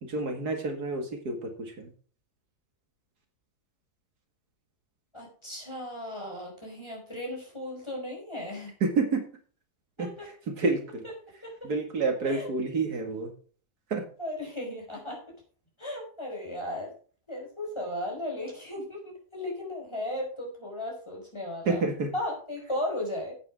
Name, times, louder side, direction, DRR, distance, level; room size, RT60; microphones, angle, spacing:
voice 1, 0.0-1.9 8.8-9.2 10.0-11.0 11.6-13.3 13.9-14.1 21.7-22.1, right 3 dB, 85° right, 4 dB, 2.5 m, -29 dB
voice 2, 5.1-8.7 10.0-10.3 11.4-11.7 12.3-12.5 14.2-15.2 15.8-16.9 17.3-21.8 22.1-23.3, left 1 dB, 15° left, -2 dB, 4.7 m, -36 dB
9.7 x 8.7 x 4.8 m, 0.41 s
omnidirectional pair, 1.6 m